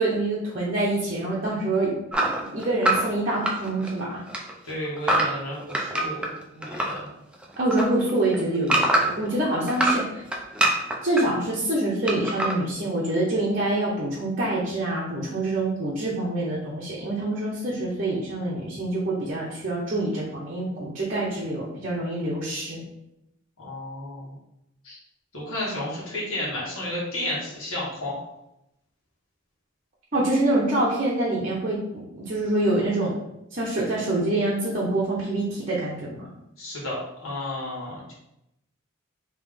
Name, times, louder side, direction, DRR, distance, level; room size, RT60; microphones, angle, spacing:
voice 1, 0.0-4.2 7.6-10.2 11.0-22.8 30.1-33.2 33.5-36.3, right 2 dB, 40° right, -7 dB, 0.7 m, -26 dB
sound 1, 2.1-4.0 4.3-7.0 7.3-9.3 9.7-11.2 12.1-12.6, right 1 dB, 5° right, 0.4 m, -24 dB
voice 2, 4.6-7.1 23.6-24.4 24.8-25.0 25.3-28.2 36.6-38.1, left 1 dB, 80° left, -6 dB, 1.4 m, -32 dB
3.7 x 2.9 x 3.3 m, 0.85 s
head